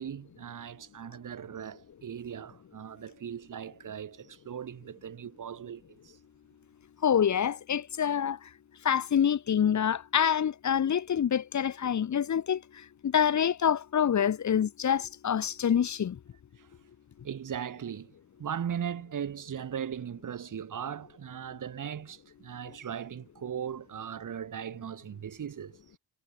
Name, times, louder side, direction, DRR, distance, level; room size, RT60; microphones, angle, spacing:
voice 1, 0.0-6.2 16.6-16.7 17.2-25.8, right 8 dB, 50° right, 7.1 m, -38 dB
voice 2, 7.0-8.4 8.9-12.6 13.0-16.2, left 8 dB, 45° left, 1.9 m, -26 dB
cardioid pair, 85°, 38 cm